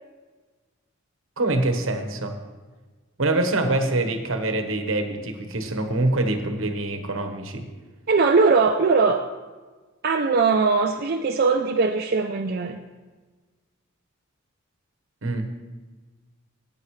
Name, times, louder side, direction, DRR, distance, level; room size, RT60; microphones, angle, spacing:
voice 1, 1.4-2.4 3.2-7.7 15.2-15.5, right 2 dB, 75° right, 5 dB, 1.2 m, -25 dB
voice 2, 8.1-9.3 10.0-12.8, right 4 dB, 50° right, 3 dB, 0.5 m, -20 dB
16.0 x 8.9 x 3.2 m, 1.3 s
head